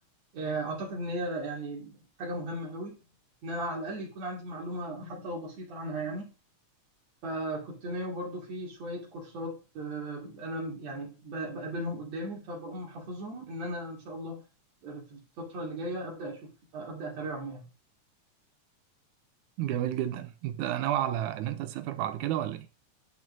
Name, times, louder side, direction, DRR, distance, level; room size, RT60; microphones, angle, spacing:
voice 1, 0.3-3.0 3.4-6.3 7.2-14.4 14.8-17.6, right 1 dB, 65° right, 3.2 m, -36 dB
voice 2, 19.6-22.7, right 12 dB, 85° right, 2.0 m, -31 dB
10.5 x 4.5 x 2.6 m
omnidirectional pair, 3.4 m